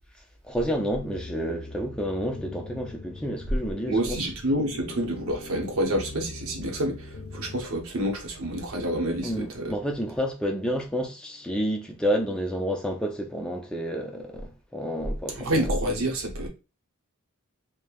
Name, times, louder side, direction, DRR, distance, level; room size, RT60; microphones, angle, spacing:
voice 1, 0.4-4.3 9.2-15.7, equal, 5° left, 0.3 m, -30 dB
sound 1, 0.8-7.6, left 2 dB, 65° left, 0.5 m, -42 dB
voice 2, 3.9-9.7 15.4-16.5, right 1 dB, 80° right, 0.8 m, -28 dB
3.1 x 2.1 x 2.2 m
head